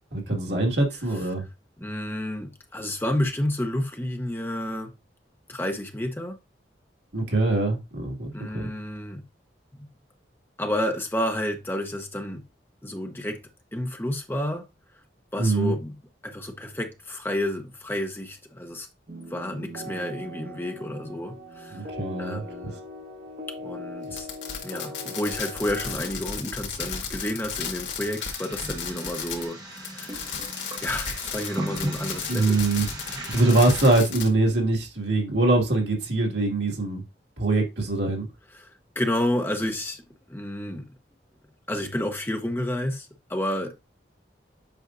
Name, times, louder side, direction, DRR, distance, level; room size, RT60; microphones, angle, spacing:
voice 1, 0.1-1.4 7.1-8.7 15.4-15.7 21.7-22.4 32.3-32.9 33.1-37.0 37.4-38.3, right 2 dB, 75° right, 2.1 m, -23 dB
voice 2, 1.8-4.9 5.5-6.4 8.3-9.2 9.7-9.9 10.6-12.4 12.8-13.4 13.7-14.7 15.3-15.9 16.2-18.9 19.3-21.9 22.2-22.8 23.6-24.3 24.6-30.3 30.8-32.6 38.5-40.0 40.3-40.9 41.7-43.8, left 1 dB, 10° left, 0.9 m, -30 dB
sound 1, 19.1-26.0, left 1 dB, 45° right, 1.4 m, -40 dB
Fireworks, 24.1-29.5 29.8-34.3, left 7 dB, 85° left, 1.8 m, -34 dB
sound 2, 27.9-34.0, right 1 dB, 20° right, 1.1 m, -37 dB
8.1 x 5.3 x 2.6 m
head